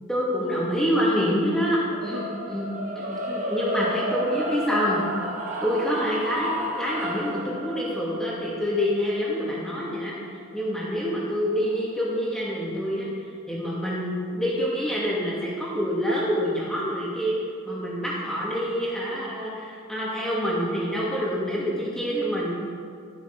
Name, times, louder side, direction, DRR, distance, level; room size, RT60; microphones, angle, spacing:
voice 1, 0.1-2.7 3.0-5.0 5.6-10.1 10.5-13.1 13.5-17.3 17.6-22.5, equal, 5° left, -6 dB, 2.3 m, -26 dB
sound 1, 1.9-12.1, equal, 35° right, 1.5 m, -33 dB
13.0 x 7.9 x 6.0 m, 2.2 s
head